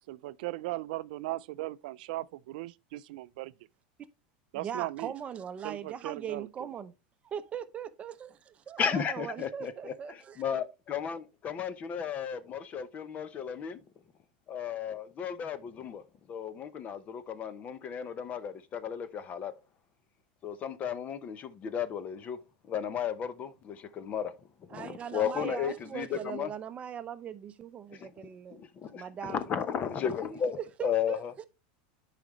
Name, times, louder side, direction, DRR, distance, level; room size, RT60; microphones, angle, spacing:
voice 1, 0.1-3.5 4.5-5.1 5.6-6.5, right 18 dB, 70° right, 0.4 m, -37 dB
voice 2, 4.5-6.9 7.2-10.4 24.7-28.6 28.9-29.4 30.3-30.4 30.8-31.4, right 8 dB, 25° right, 0.7 m, -40 dB
voice 3, 8.8-13.8 14.5-16.0 16.3-19.5 20.4-22.4 22.6-24.3 24.7-26.5 27.9-28.1 28.5-31.3, left 8 dB, 30° left, 0.7 m, -34 dB
10.0 x 5.0 x 3.1 m
supercardioid pair, 135°, 5 cm